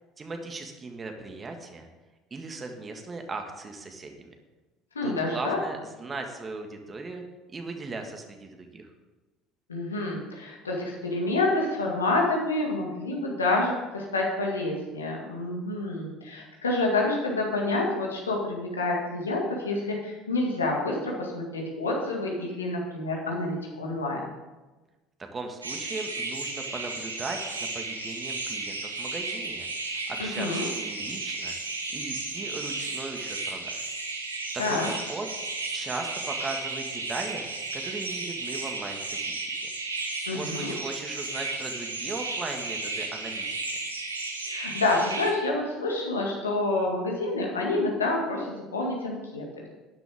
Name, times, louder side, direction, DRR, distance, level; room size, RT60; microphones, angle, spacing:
voice 1, 0.2-1.9 2.3-4.3 5.0-7.2 7.5-8.9 25.3-29.7 30.1-31.5 31.9-33.9 34.5-34.8 35.1-35.3 35.7-37.4 37.7-39.7 40.3-43.6, right 3 dB, 30° right, 4 dB, 1.9 m, -38 dB
voice 2, 4.9-5.6 9.7-24.3 30.2-30.7 34.6-34.9 40.3-40.7 44.5-49.5, left 2 dB, 85° left, -1 dB, 2.3 m, -28 dB
sound 1, 25.6-45.3, right 3 dB, 85° right, 1.1 m, -34 dB
12.5 x 10.0 x 3.7 m, 1.2 s
figure-of-eight pair, 60°, 0 cm